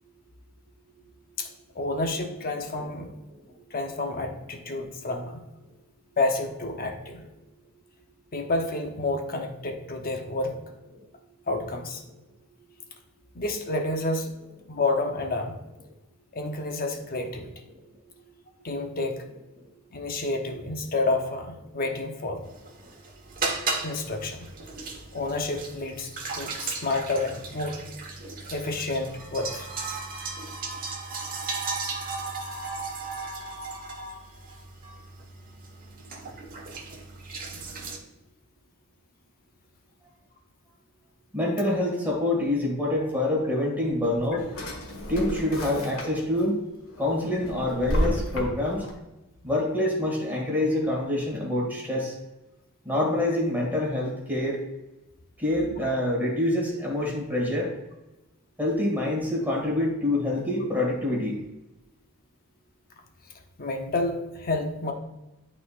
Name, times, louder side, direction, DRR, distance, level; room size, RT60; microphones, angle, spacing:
voice 1, 1.7-3.1 3.7-5.4 6.2-7.2 8.3-10.6 11.5-12.0 13.3-14.3 14.7-15.6 16.3-17.5 18.6-19.3 19.9-22.4 23.8-24.5 25.1-26.1 26.3-27.8 28.5-29.7 55.8-55.9 63.6-64.9, left 2 dB, 45° left, 4 dB, 0.9 m, -29 dB
sound 1, 22.5-38.0, right 3 dB, 40° right, 1.3 m, -36 dB
voice 2, 41.3-44.5 45.1-46.6 47.0-48.9 49.4-52.1 52.8-54.6 55.4-57.7 58.6-61.4, left 1 dB, 10° right, -3 dB, 2.0 m, -26 dB
Drawer open or close, 43.9-46.4 46.8-48.9, equal, 75° left, 1.6 m, -31 dB
11.5 x 4.3 x 2.5 m, 1.0 s
head